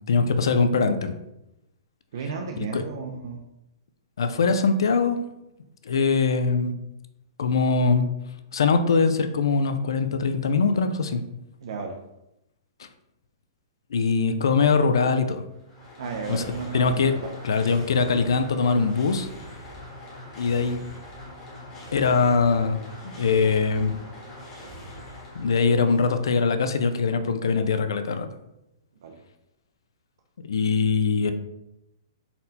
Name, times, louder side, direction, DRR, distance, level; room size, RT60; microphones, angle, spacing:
voice 1, 0.1-1.2 2.7-2.8 4.2-5.2 5.8-6.7 7.4-8.1 8.5-11.2 13.9-15.5 16.3-16.5 16.7-17.1 17.4-19.3 20.4-20.8 21.9-24.0 25.3-28.3 30.4-31.3, left 4 dB, 90° left, 8 dB, 0.4 m, -22 dB
voice 2, 2.1-3.4 11.6-12.0 16.0-17.3 29.0-29.2, right 5 dB, 60° right, 3 dB, 0.5 m, -34 dB
sound 1, 15.5-26.3, left 1 dB, 20° left, 1.0 m, -42 dB
4.2 x 2.2 x 4.0 m, 0.88 s
hypercardioid pair, 170°, 2 cm